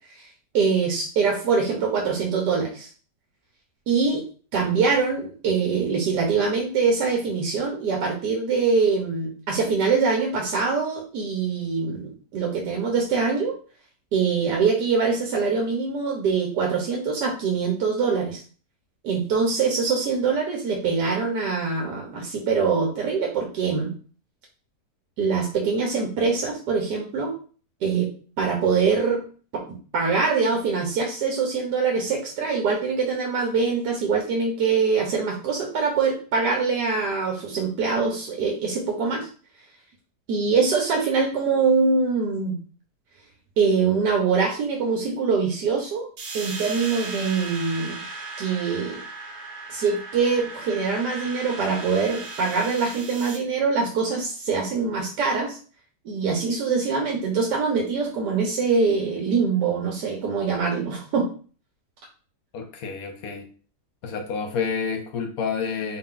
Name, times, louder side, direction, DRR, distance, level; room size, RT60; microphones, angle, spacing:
voice 1, 0.5-2.9 3.9-4.2 4.5-13.5 14.1-18.4 19.0-23.9 25.2-27.4 27.8-28.1 28.4-29.2 29.5-29.6 29.9-39.3 40.3-42.6 43.6-46.1 46.3-48.0 48.4-49.0 49.7-55.6 56.0-61.3, right 5 dB, 75° right, 1.3 m, -23 dB
sound 1, 46.2-53.4, right 3 dB, 50° right, 0.9 m, -37 dB
voice 2, 62.5-63.5 64.0-66.0, left 6 dB, 65° left, 1.0 m, -29 dB
4.0 x 2.3 x 3.6 m
omnidirectional pair, 1.8 m